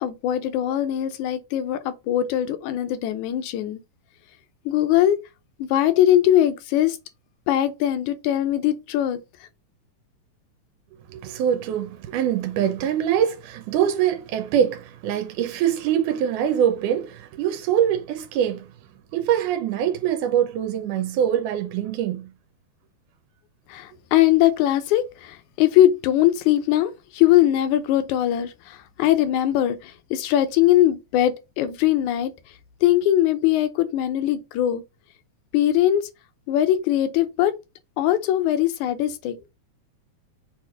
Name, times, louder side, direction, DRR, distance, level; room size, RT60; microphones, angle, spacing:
voice 1, 0.0-3.8 4.7-5.2 5.6-7.0 7.5-9.2 23.7-32.3 32.8-34.8 35.5-36.0 36.5-37.5 38.0-39.4, left 12 dB, 75° left, 2.1 m, -21 dB
voice 2, 11.1-18.7 19.1-22.3, right 9 dB, 90° right, 2.2 m, -23 dB
6.6 x 3.1 x 4.8 m
omnidirectional pair, 3.6 m